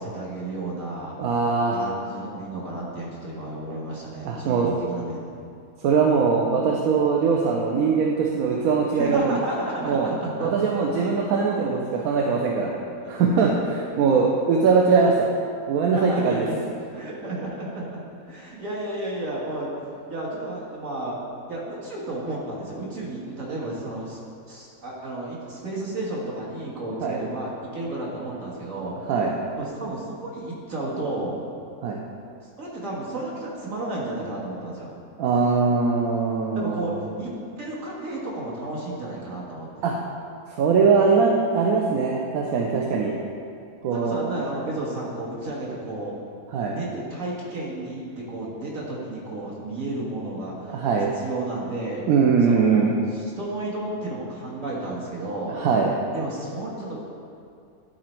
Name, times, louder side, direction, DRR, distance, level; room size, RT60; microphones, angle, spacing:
voice 1, 0.0-1.2 1.7-5.5 9.0-10.5 13.0-13.1 13.6-13.8 15.9-16.6 16.9-18.0 18.3-19.7 20.1-21.2 21.5-24.2 24.5-29.1 29.6-31.4 32.6-35.0 36.5-37.3 37.6-39.8 43.9-46.2 46.7-50.8 51.1-52.0 52.4-55.6 56.1-57.0, right 2 dB, 60° right, -5 dB, 1.9 m, -32 dB
voice 2, 1.2-1.8 4.2-4.7 5.8-9.4 9.8-10.1 10.4-12.7 13.1-15.3 15.7-16.5 27.0-27.2 29.1-29.3 31.8-32.0 35.2-36.9 39.8-39.9 40.6-43.2 43.8-44.2 46.5-46.8 50.7-51.1 52.1-52.9 55.5-55.9, right 5 dB, 75° right, -1 dB, 1.1 m, -21 dB
10.5 x 4.3 x 4.4 m, 2.4 s
omnidirectional pair, 1.6 m